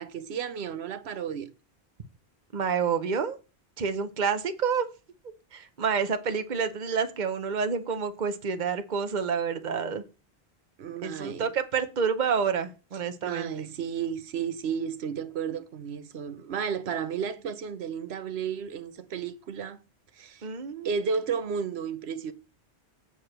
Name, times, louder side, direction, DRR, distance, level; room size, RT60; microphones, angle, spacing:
voice 1, 0.0-1.5 10.8-11.5 13.2-19.8 20.1-20.4 20.8-22.3, right 7 dB, 75° right, 1.1 m, -33 dB
voice 2, 2.5-3.4 3.8-4.9 5.5-10.0 11.0-13.5 20.4-20.9, right 6 dB, 45° right, 1.1 m, -28 dB
8.4 x 5.0 x 5.9 m
omnidirectional pair, 1.1 m